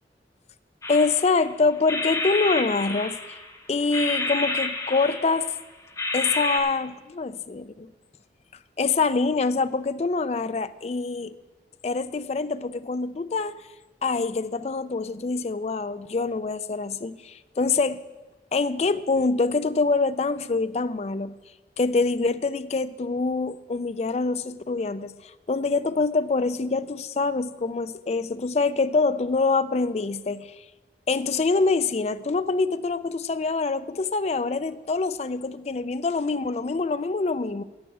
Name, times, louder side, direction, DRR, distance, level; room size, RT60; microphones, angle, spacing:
sound 1, 0.8-1.5 1.9-3.5 3.9-5.6 6.0-6.6, left 2 dB, 15° left, 1.1 m, -29 dB
voice 1, 0.9-3.4 3.7-5.5 6.1-7.9 8.8-11.4 11.8-13.6 14.0-18.0 18.5-21.4 21.8-30.6 31.1-37.6, left 3 dB, 35° left, 13 dB, 0.4 m, -25 dB
8.6 x 8.0 x 7.6 m, 1.2 s
head